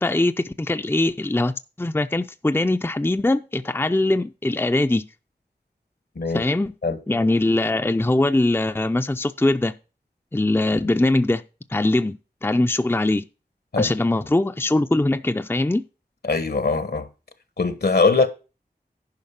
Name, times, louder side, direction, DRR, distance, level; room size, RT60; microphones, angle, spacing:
voice 1, 0.0-5.0 6.3-6.7 7.1-9.7 10.3-11.4 11.7-13.3 13.8-15.8, left 2 dB, 15° left, 0.5 m, -22 dB
voice 2, 16.2-17.1 17.6-18.3, left 4 dB, 70° left, 1.3 m, -21 dB
10.5 x 5.1 x 5.7 m
wide cardioid pair, 40°, 17 cm